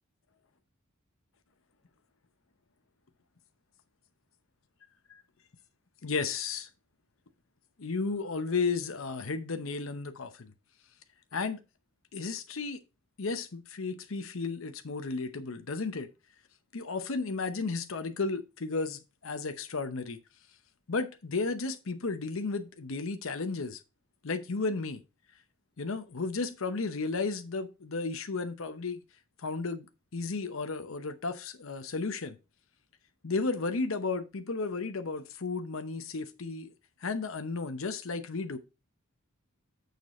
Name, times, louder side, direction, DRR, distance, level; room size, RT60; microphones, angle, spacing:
voice 1, 6.0-6.7 7.8-10.5 11.3-11.6 12.1-12.8 13.2-16.1 16.7-20.2 20.9-23.8 24.2-25.0 25.8-29.0 29.4-32.4 33.2-36.7 37.0-38.6, left 4 dB, 70° left, 0.8 m, -33 dB
6.8 x 6.6 x 4.2 m
head